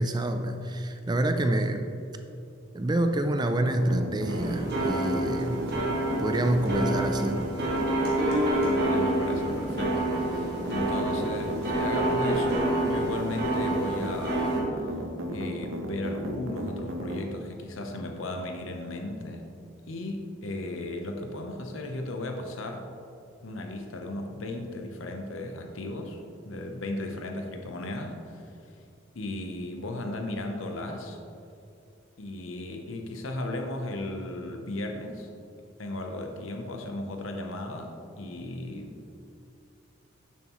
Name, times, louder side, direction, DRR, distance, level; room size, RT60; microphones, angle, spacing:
voice 1, 0.0-1.9 2.7-5.7 6.2-7.5, right 1 dB, 20° right, 6 dB, 0.4 m, -27 dB
sound 1, 3.8-17.2, equal, 75° right, 0.9 m, -34 dB
sound 2, 4.3-14.6, right 1 dB, 50° right, 1.7 m, -28 dB
voice 2, 8.6-14.6 15.3-19.5 19.9-22.9 23.4-28.5 29.1-31.2 32.2-35.3 35.8-39.0, left 2 dB, 75° left, 3 dB, 0.8 m, -35 dB
10.0 x 7.2 x 3.0 m, 2.5 s
head